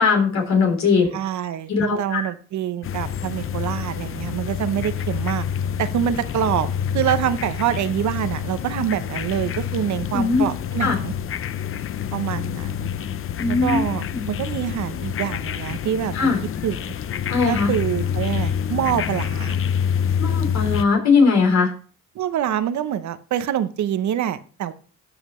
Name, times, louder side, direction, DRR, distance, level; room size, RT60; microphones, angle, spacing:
voice 1, 0.0-1.2 1.7-2.3 10.1-10.4 10.8-11.0 13.4-13.9 14.1-14.2 16.1-16.4 17.3-17.7 20.2-21.7, left 5 dB, 65° left, 2 dB, 3.6 m, -19 dB
voice 2, 1.1-5.4 5.8-6.7 6.9-11.1 12.1-12.9 13.5-16.3 16.6-16.9 17.5-19.6 22.1-24.7, right 10 dB, 70° right, 12 dB, 0.8 m, -25 dB
sound 1, 2.8-20.8, left 8 dB, 45° left, 0.6 m, -27 dB
13.0 x 5.8 x 3.1 m, 0.40 s
cardioid pair, 90°, 30 cm